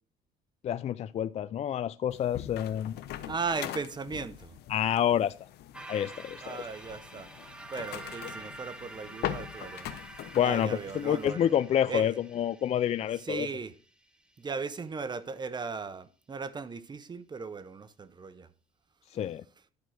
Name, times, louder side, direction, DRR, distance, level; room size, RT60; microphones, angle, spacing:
voice 1, 0.6-3.0 4.7-5.3 5.9-6.6 10.3-13.5 19.1-19.4, left 10 dB, 40° left, 0.3 m, -28 dB
Door Open and Close, 2.1-11.3, left 12 dB, 75° left, 0.8 m, -42 dB
voice 2, 3.3-4.6 5.9-6.1 6.4-7.3 7.7-10.0 10.4-11.5 11.9-12.2 13.2-13.7 14.4-18.5, right 4 dB, 25° right, 0.8 m, -37 dB
sound 1, 5.7-14.2, right 2 dB, 5° right, 1.2 m, -47 dB
11.5 x 4.6 x 6.3 m
cardioid pair, 110°, 17 cm